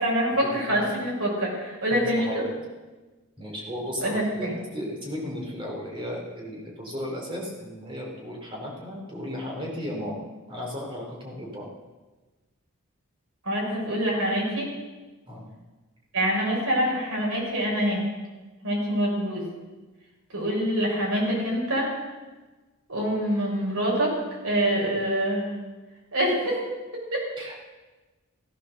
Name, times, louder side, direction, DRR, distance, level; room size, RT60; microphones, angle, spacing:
voice 1, 0.0-2.4 4.0-4.5 13.4-14.7 16.1-18.0 18.6-19.4 20.3-21.9 22.9-24.2 24.4-25.5 26.1-26.6 26.9-27.3, equal, 85° right, -3 dB, 6.6 m, -25 dB
voice 2, 1.9-2.5 3.4-11.7 15.3-15.5 27.4-27.6, equal, 25° right, -2 dB, 3.8 m, -35 dB
16.0 x 13.0 x 6.6 m, 1.2 s
head